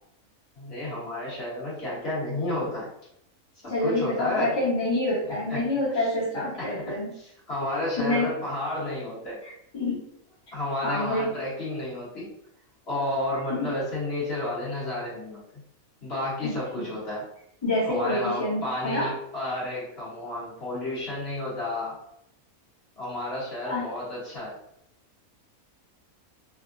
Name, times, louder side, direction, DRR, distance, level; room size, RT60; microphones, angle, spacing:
voice 1, 0.6-2.9 3.6-4.6 5.5-5.6 5.9-6.1 6.3-9.4 10.5-12.3 12.8-15.4 16.0-17.2 17.9-22.0 23.0-24.5, left 1 dB, 45° left, -7 dB, 1.2 m, -31 dB
voice 2, 3.7-7.1 8.0-8.3 9.4-10.0 10.8-11.4 13.5-13.7 16.4-16.9 17.6-19.1 23.6-23.9, left 1 dB, 20° left, -7 dB, 0.8 m, -27 dB
3.4 x 2.0 x 2.5 m, 0.76 s
omnidirectional pair, 1.5 m